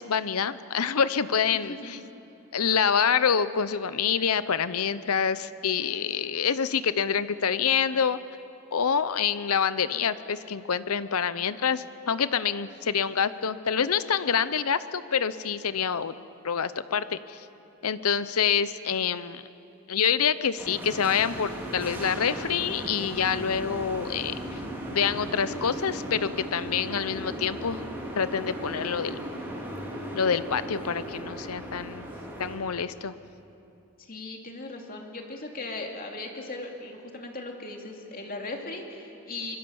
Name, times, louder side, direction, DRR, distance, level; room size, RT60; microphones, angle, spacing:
voice 1, 0.0-1.8 2.5-8.2 8.7-16.1 16.4-17.4 17.8-19.4 19.9-24.4 24.9-27.8 28.2-29.2 30.1-32.1 32.4-33.1, left 7 dB, 85° left, 14 dB, 0.7 m, -26 dB
voice 2, 1.5-2.0 34.0-39.6, left 2 dB, 40° left, 1 dB, 2.7 m, -38 dB
sound 1, 20.6-32.6, equal, 10° right, 4.0 m, -37 dB
25.0 x 22.0 x 7.1 m, 2.8 s
head